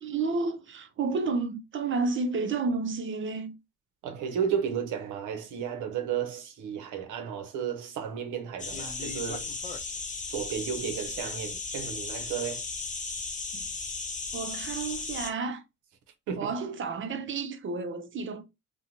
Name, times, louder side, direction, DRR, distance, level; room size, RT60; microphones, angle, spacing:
voice 1, 0.0-3.5 13.5-13.7 14.3-15.6 16.4-18.4, right 4 dB, 40° right, 0.5 m, -31 dB
voice 2, 4.0-9.5 10.3-12.6 16.3-16.5, right 8 dB, 80° right, 0.7 m, -33 dB
sound 1, 8.6-15.3, left 4 dB, 25° left, 0.5 m, -36 dB
2.5 x 2.2 x 2.9 m
cardioid pair, 90°, 30 cm